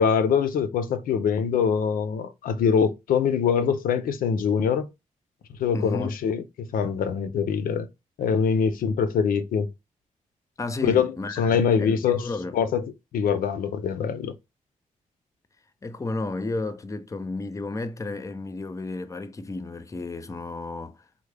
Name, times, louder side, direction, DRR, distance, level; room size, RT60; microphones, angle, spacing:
voice 1, 0.0-4.9 5.6-7.9 8.2-9.7 10.8-12.2 12.5-12.8 13.1-14.3, left 6 dB, 85° left, 0.4 m, -23 dB
voice 2, 5.7-6.2 10.6-12.5 15.8-21.0, left 2 dB, 20° left, 0.4 m, -32 dB
3.5 x 2.0 x 3.2 m
cardioid pair, 70°, 14 cm